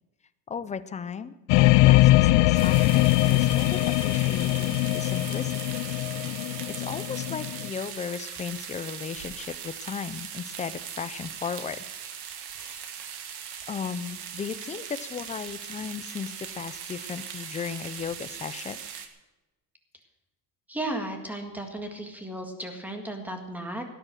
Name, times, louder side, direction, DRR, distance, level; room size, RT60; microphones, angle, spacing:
voice 1, 0.5-5.5 6.2-11.8 12.6-12.8 13.7-18.8, left 6 dB, 20° left, 12 dB, 0.4 m, -36 dB
sound 1, 1.5-7.7, left 18 dB, 75° left, 0.5 m, -22 dB
sound 2, 2.5-19.1, right 8 dB, 70° right, 1.9 m, -40 dB
voice 2, 20.7-23.8, right 1 dB, 5° right, 4 dB, 1.8 m, -34 dB
17.0 x 9.8 x 6.3 m, 1.1 s
cardioid pair, 175°, 42 cm